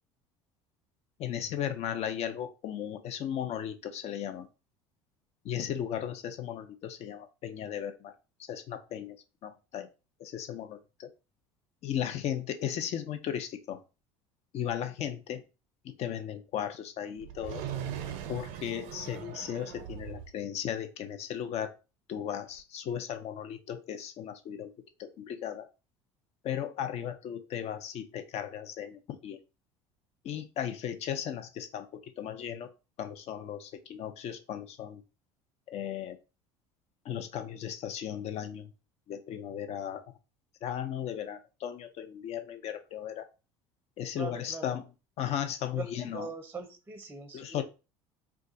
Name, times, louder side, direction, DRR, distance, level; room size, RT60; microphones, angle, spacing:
voice 1, 1.2-4.5 5.4-8.1 8.5-9.2 9.4-9.9 10.2-11.1 11.8-13.8 14.5-15.4 15.8-17.6 18.3-21.7 22.1-24.7 25.0-25.7 26.4-29.4 30.2-32.7 33.0-35.0 35.7-36.2 37.0-38.7 39.1-40.0 40.6-43.3 44.0-44.8 45.2-46.3 47.3-47.6, left 9 dB, 50° left, 8 dB, 0.6 m, -36 dB
sound 1, 17.2-20.3 22.6-22.7, right 9 dB, 70° right, 0.5 m, -40 dB
voice 2, 44.2-44.8 45.7-47.6, right 4 dB, 15° right, 6 dB, 0.6 m, -41 dB
2.4 x 2.3 x 3.9 m, 0.30 s
hypercardioid pair, 80°, 14 cm